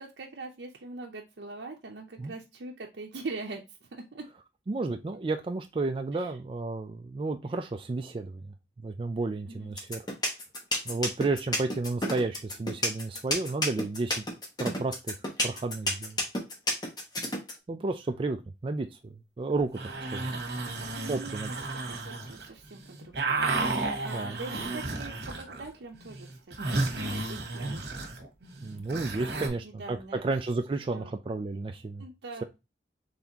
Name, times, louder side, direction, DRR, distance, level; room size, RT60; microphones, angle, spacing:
voice 1, 0.0-4.2 6.1-6.3 9.5-9.7 10.8-11.0 20.9-23.5 24.0-26.3 26.7-27.9 29.1-30.2 30.9-31.1 32.0-32.4, right 3 dB, 80° right, 0 dB, 0.6 m, -42 dB
voice 2, 4.7-8.4 8.8-10.0 10.9-14.2 14.6-15.2 15.4-16.2 17.7-19.7 20.1-20.3 21.1-21.5 24.1-24.4 27.6-27.8 28.6-32.0, right 3 dB, 30° right, 5 dB, 0.3 m, -32 dB
sound 1, 9.8-17.5, left 1 dB, 25° left, 1.0 m, -29 dB
sound 2, 19.6-22.5 22.7-25.7 25.9-29.5, right 3 dB, 65° right, 1.2 m, -33 dB
4.1 x 3.4 x 2.8 m, 0.24 s
head